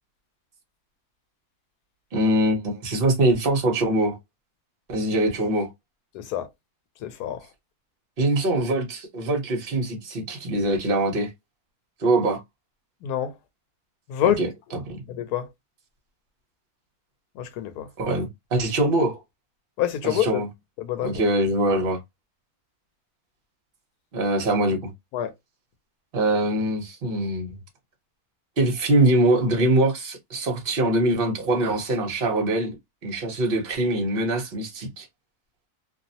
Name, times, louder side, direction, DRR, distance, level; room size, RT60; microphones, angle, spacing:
voice 1, 2.1-4.2 4.9-5.7 8.2-11.3 12.0-12.4 14.2-15.0 18.0-19.2 20.0-20.5 21.0-22.0 24.1-24.9 26.1-27.6 28.6-32.7 33.0-35.1, right 1 dB, 45° right, 0.9 m, -23 dB
voice 2, 6.1-6.5 7.0-7.4 13.0-13.3 14.1-14.4 15.2-15.5 17.4-17.9 19.8-20.4 20.8-21.1 25.1-25.3, left 11 dB, 85° left, 1.1 m, -26 dB
2.7 x 2.0 x 2.7 m
omnidirectional pair, 1.6 m